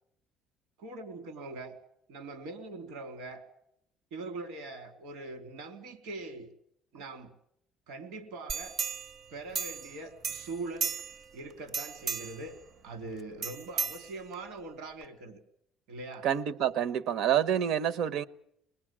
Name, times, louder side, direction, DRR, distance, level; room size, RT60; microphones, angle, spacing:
voice 1, 0.8-1.7 2.1-3.4 4.1-6.5 6.9-7.3 7.9-8.7 9.3-10.9 11.3-12.6 12.8-15.4 15.9-16.3, right 2 dB, 85° right, 3.4 m, -42 dB
sound 1, 8.5-10.0 10.2-11.3 11.7-12.5 13.4-14.5 15.0-15.1, right 5 dB, 40° right, 0.8 m, -35 dB
voice 2, 16.2-18.2, right 9 dB, 65° right, 1.1 m, -28 dB
24.0 x 20.0 x 7.6 m
cardioid pair, 145°, 0 cm